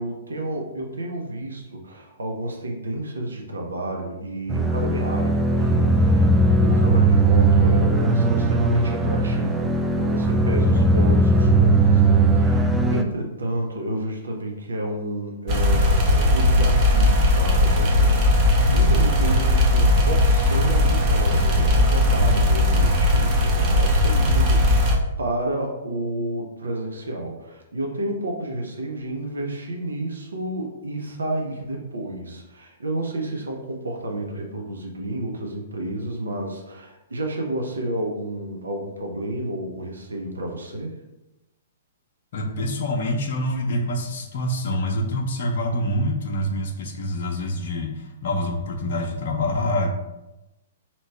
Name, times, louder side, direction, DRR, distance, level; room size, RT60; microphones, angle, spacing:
voice 1, 0.0-6.3 6.6-40.9, right 1 dB, 75° right, 1 dB, 0.7 m, -30 dB
sound 1, 4.5-13.0, right 2 dB, 10° right, 0.3 m, -18 dB
sound 2, 15.5-25.0, left 1 dB, 35° right, 0.7 m, -18 dB
voice 2, 42.3-49.9, left 1 dB, 55° left, 1 dB, 0.6 m, -26 dB
2.9 x 2.8 x 4.4 m, 0.97 s
figure-of-eight pair, 115°, 0 cm